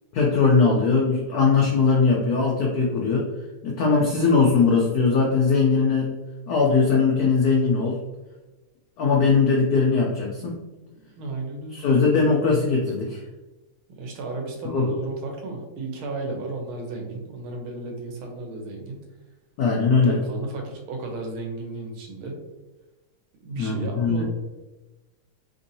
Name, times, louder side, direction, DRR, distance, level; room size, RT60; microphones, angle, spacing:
voice 1, 0.1-3.3 3.6-6.1 6.5-8.0 9.0-10.6 11.7-13.2 14.7-14.9 19.6-20.2 23.6-24.2, left 4 dB, 85° left, -2 dB, 0.8 m, -20 dB
voice 2, 11.2-11.8 14.0-19.0 20.0-22.3 23.4-24.2, right 2 dB, 85° right, 1 dB, 1.6 m, -33 dB
3.7 x 2.7 x 2.6 m, 1.1 s
omnidirectional pair, 2.2 m